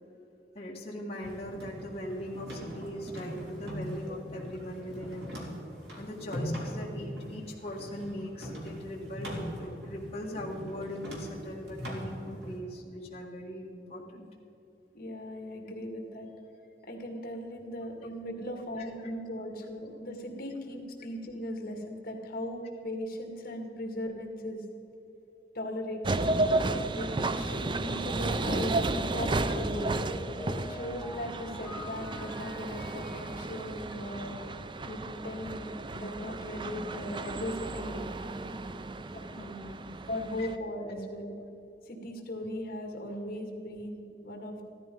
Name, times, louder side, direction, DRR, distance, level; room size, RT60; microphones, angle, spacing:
voice 1, 0.5-5.3 6.0-14.3 18.8-18.9 39.4-39.9 40.4-40.5, equal, 35° left, -5 dB, 1.9 m, -40 dB
sound 1, 1.2-12.6, equal, 70° right, 3.6 m, -41 dB
voice 2, 14.9-16.3 16.8-24.6 25.5-26.3 26.9-30.0 30.6-34.3 34.9-38.0 39.1-39.2 40.1-41.4 41.8-44.6, left 1 dB, 55° left, 2 dB, 2.2 m, -38 dB
sound 2, 26.0-40.6, right 2 dB, 25° right, 0.5 m, -33 dB
sound 3, 28.0-35.3, left 2 dB, 5° left, 0.7 m, -46 dB
15.5 x 12.5 x 5.4 m, 2.9 s
head